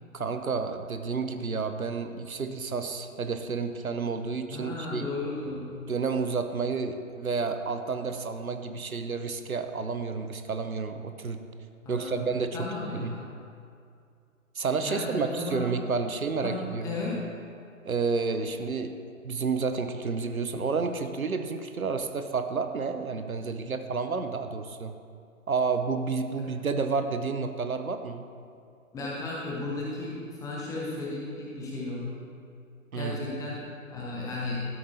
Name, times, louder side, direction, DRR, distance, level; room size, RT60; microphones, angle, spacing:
voice 1, 0.1-5.1 5.9-11.4 11.9-12.7 12.9-13.2 14.6-17.0 17.8-18.9 19.2-24.9 25.5-28.2 32.9-33.2, right 4 dB, 80° right, 8 dB, 0.8 m, -30 dB
voice 2, 4.5-5.7 11.8-13.2 14.8-15.6 16.4-17.2 26.3-26.5 28.9-32.2 32.9-34.6, left 2 dB, 10° left, -5 dB, 1.0 m, -35 dB
12.5 x 8.5 x 2.7 m, 2.3 s
figure-of-eight pair, 130°, 42 cm